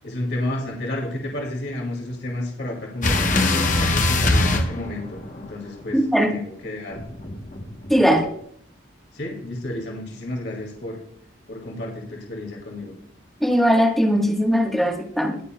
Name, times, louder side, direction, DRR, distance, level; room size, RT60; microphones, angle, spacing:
voice 1, 0.0-7.0 9.1-11.0 11.5-12.9, left 1 dB, 60° left, 0 dB, 2.2 m, -31 dB
sound 1, 3.0-5.5 6.9-8.2, left 2 dB, 40° left, 0.9 m, -22 dB
voice 2, 5.9-6.3 7.9-8.3 13.4-15.4, equal, ahead, 1 dB, 1.2 m, -19 dB
19.5 x 6.9 x 2.2 m, 0.65 s
head